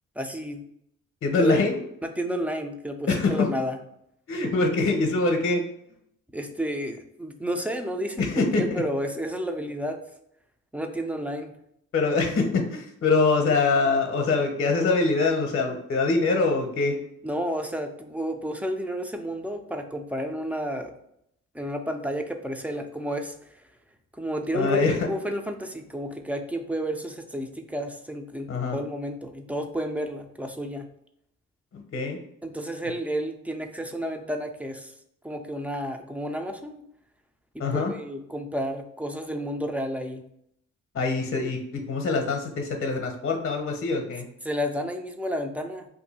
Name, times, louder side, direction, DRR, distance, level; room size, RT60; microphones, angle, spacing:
voice 1, 0.2-0.6 1.4-1.7 2.2-3.8 6.3-10.0 10.7-11.5 17.2-20.9 21.5-23.7 24.2-30.9 32.4-34.9 35.2-36.8 37.5-40.2 44.4-45.9, equal, 5° right, 5 dB, 0.4 m, -31 dB
voice 2, 1.2-1.8 3.1-3.5 4.3-5.6 8.2-8.6 11.9-17.0 24.5-25.1 28.5-28.8 31.7-32.2 37.6-37.9 40.9-44.3, left 3 dB, 45° left, 3 dB, 0.7 m, -24 dB
2.6 x 2.6 x 3.9 m, 0.74 s
cardioid pair, 90°, 30 cm